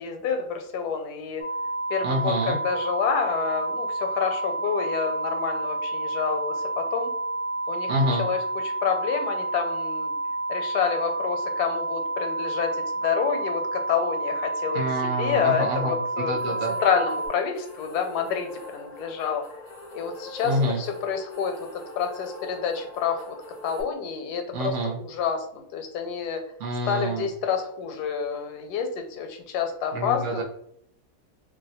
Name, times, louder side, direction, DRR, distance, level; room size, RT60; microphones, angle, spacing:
voice 1, 0.0-1.4 1.9-7.1 7.7-7.9 8.2-8.4 8.6-10.1 10.5-14.8 15.2-16.5 16.8-19.4 19.9-23.4 23.6-26.4 26.9-30.4, left 7 dB, 80° left, 5 dB, 1.1 m, -28 dB
sound 1, 1.4-17.3, right 2 dB, 30° right, 0.7 m, -30 dB
voice 2, 2.0-2.6 7.9-8.3 14.7-16.8 20.4-20.8 24.5-25.0 26.6-27.3 29.9-30.4, right 1 dB, 65° right, 0 dB, 0.8 m, -27 dB
sound 2, 16.4-23.8, left 1 dB, 45° left, 0.6 m, -42 dB
2.7 x 2.1 x 4.0 m, 0.70 s
omnidirectional pair, 1.7 m